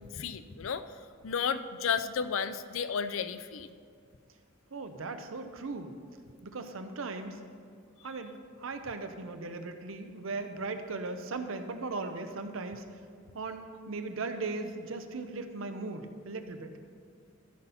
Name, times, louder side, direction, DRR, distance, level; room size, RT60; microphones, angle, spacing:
voice 1, 0.0-3.7 8.0-8.1, left 6 dB, 70° left, 11 dB, 0.5 m, -33 dB
voice 2, 4.7-5.9 6.4-7.4 8.0-8.3 8.6-12.8 13.3-16.7, right 3 dB, 70° right, 7 dB, 0.7 m, -38 dB
13.5 x 5.6 x 4.2 m, 2.2 s
head